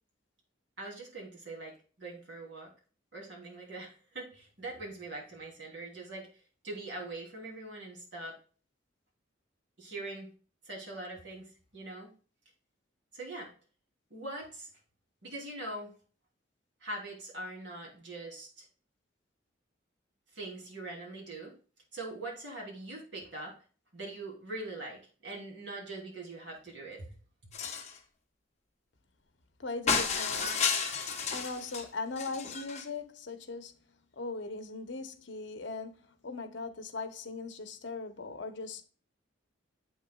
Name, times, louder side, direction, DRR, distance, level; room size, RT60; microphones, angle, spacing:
voice 1, 0.8-1.7 2.0-2.7 3.1-6.3 6.6-8.3 9.8-10.3 10.6-12.1 13.1-13.5 14.1-14.7 15.2-15.9 16.8-18.7 20.3-21.5 21.9-23.5 23.9-27.1, right 2 dB, 65° right, 3.2 m, -42 dB
sound 1, 27.5-28.0 29.9-31.8 32.2-32.8, left 5 dB, 35° left, 1.2 m, -32 dB
voice 2, 29.6-30.6 31.3-33.7 34.2-38.8, left 3 dB, 65° left, 1.0 m, -39 dB
8.1 x 6.4 x 2.4 m
head